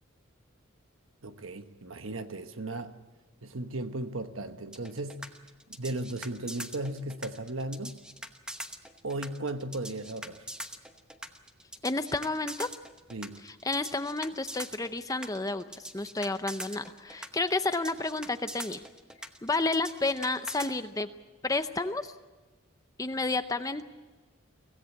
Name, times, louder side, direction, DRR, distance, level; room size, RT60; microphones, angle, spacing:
voice 1, 1.2-3.0 3.4-5.3 5.8-8.0 9.0-10.4 13.1-13.4, right 2 dB, 70° right, 1.2 m, -36 dB
sound 1, 4.7-20.7, right 1 dB, 5° right, 0.9 m, -42 dB
voice 2, 11.8-12.7 13.4-18.8 19.4-21.1 21.4-22.1 23.0-23.8, left 3 dB, 15° left, 0.6 m, -31 dB
24.5 x 17.0 x 8.4 m
head